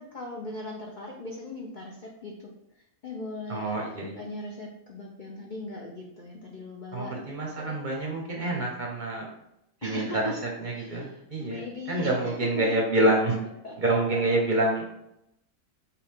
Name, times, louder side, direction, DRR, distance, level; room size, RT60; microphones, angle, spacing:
voice 1, 0.0-2.5 3.0-3.8 4.1-7.8 9.8-10.4 10.7-12.7 13.6-14.2, left 2 dB, 80° left, -1 dB, 0.4 m, -39 dB
voice 2, 3.5-4.2 6.9-9.3 9.8-10.2 10.6-13.4 13.8-15.0, right 1 dB, 45° right, -1 dB, 0.7 m, -27 dB
5.8 x 2.4 x 3.6 m, 0.80 s
omnidirectional pair, 1.6 m